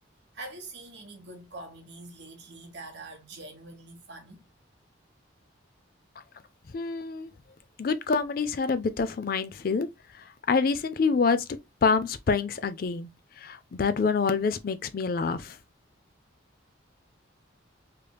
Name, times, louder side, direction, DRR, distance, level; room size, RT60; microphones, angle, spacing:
voice 1, 0.3-4.4, right 2 dB, 60° right, 1.2 m, -44 dB
voice 2, 6.7-7.3 7.8-9.9 10.5-11.5 11.8-13.1 13.4-15.6, left 5 dB, 45° left, 0.4 m, -26 dB
3.3 x 3.2 x 2.2 m
head